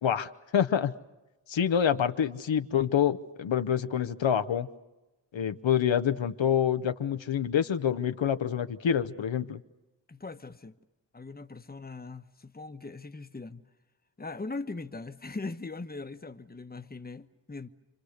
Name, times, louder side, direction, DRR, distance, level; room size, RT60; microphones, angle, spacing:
voice 1, 0.0-0.9 1.5-4.7 5.3-9.6, left 8 dB, 80° left, 1.0 m, -27 dB
voice 2, 10.1-10.7 11.1-13.6 14.2-17.7, left 3 dB, 20° left, 1.1 m, -40 dB
29.5 x 25.0 x 6.6 m
wide cardioid pair, 80°, 45 cm